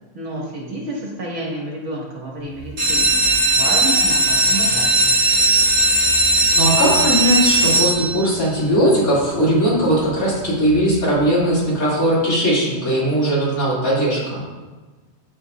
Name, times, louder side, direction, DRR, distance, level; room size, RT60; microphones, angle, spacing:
voice 1, 0.1-3.2 3.5-5.1, right 1 dB, 55° right, -3 dB, 1.7 m, -29 dB
sound 1, 2.6-8.4 9.0-9.5 9.9-10.0 10.2-10.3 10.7-10.9, right 2 dB, 75° right, 2.9 m, -17 dB
voice 2, 6.5-14.4, equal, 80° left, -8 dB, 2.7 m, -19 dB
12.0 x 4.0 x 2.3 m, 1.3 s
omnidirectional pair, 1.5 m